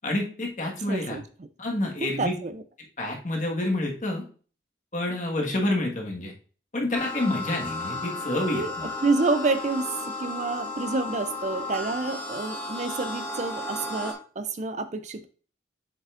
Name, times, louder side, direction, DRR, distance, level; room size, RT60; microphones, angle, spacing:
voice 1, 0.0-1.2 1.6-2.3 3.0-4.2 4.9-6.3 6.7-8.9, left 1 dB, 45° left, 0 dB, 1.5 m, -28 dB
voice 2, 0.9-1.2 2.0-2.6 8.5-9.9 10.2-15.3, right 3 dB, 40° right, 10 dB, 0.4 m, -28 dB
sound 1, 6.9-14.1, left 2 dB, 10° left, 1.4 m, -34 dB
7.4 x 5.4 x 2.4 m, 0.39 s
head